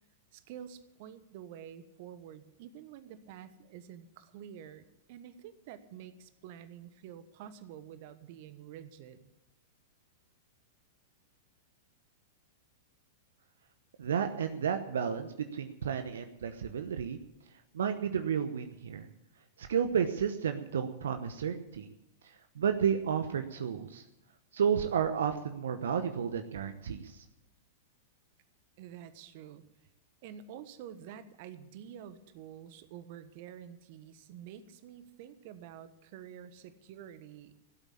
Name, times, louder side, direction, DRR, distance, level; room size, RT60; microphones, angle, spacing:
voice 1, 0.3-9.3 28.8-29.6 30.2-37.5, right 9 dB, 50° right, 12 dB, 1.2 m, -48 dB
voice 2, 14.0-17.2 17.7-19.1 19.6-21.9 22.2-24.0 24.5-27.2, right 7 dB, 70° right, 8 dB, 1.0 m, -32 dB
16.5 x 8.3 x 8.5 m, 0.88 s
figure-of-eight pair, 100°, 0 cm